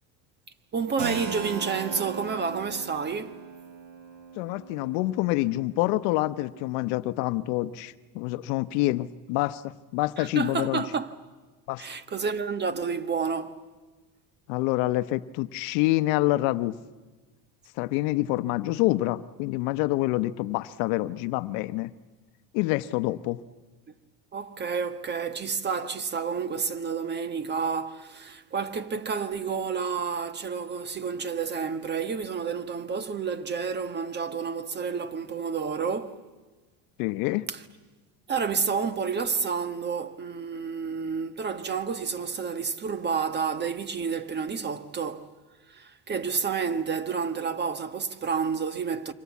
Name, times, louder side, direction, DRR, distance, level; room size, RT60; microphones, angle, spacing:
voice 1, 0.7-3.4 10.2-11.1 11.8-13.6 24.3-36.2 37.5-37.6 38.3-45.3 45.7-49.1, right 5 dB, 25° right, 1.4 m, -30 dB
Keyboard (musical), 1.0-6.5, right 6 dB, 75° right, 3.5 m, -39 dB
voice 2, 4.4-10.8 11.7-11.9 14.5-16.8 17.8-21.9 22.5-23.4 37.0-37.4, left 18 dB, 75° left, 1.0 m, -27 dB
28.0 x 25.0 x 8.4 m
cardioid pair, 130°, 44 cm